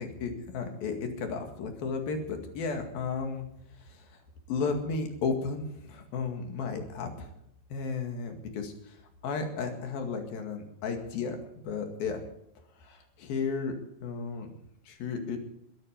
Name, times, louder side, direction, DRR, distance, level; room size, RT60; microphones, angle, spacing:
voice 1, 0.0-3.4 4.5-7.3 7.7-8.7 9.2-11.4 11.7-12.2 12.8-13.7 14.0-14.5 14.9-15.4, left 5 dB, 70° left, 5 dB, 3.9 m, -33 dB
22.0 x 11.0 x 5.1 m, 0.79 s
omnidirectional pair, 4.3 m